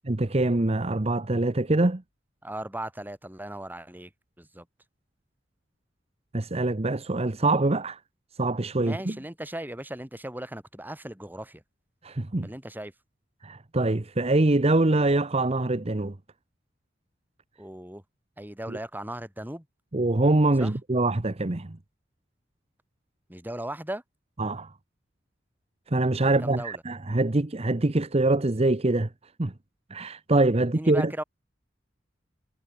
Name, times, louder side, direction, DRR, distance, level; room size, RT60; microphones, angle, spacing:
voice 1, 0.1-2.0 6.3-8.0 8.4-9.2 12.0-12.5 13.4-16.1 18.7-18.8 19.9-21.8 24.4-24.7 25.9-29.1 29.4-29.5 29.9-31.1, right 2 dB, 35° right, 1.0 m, -24 dB
voice 2, 2.4-4.1 4.4-4.7 8.8-11.6 12.4-12.9 17.6-18.0 18.4-19.6 20.6-20.7 23.3-24.0 26.2-26.8 30.7-31.2, right 1 dB, 10° right, 4.4 m, -37 dB
head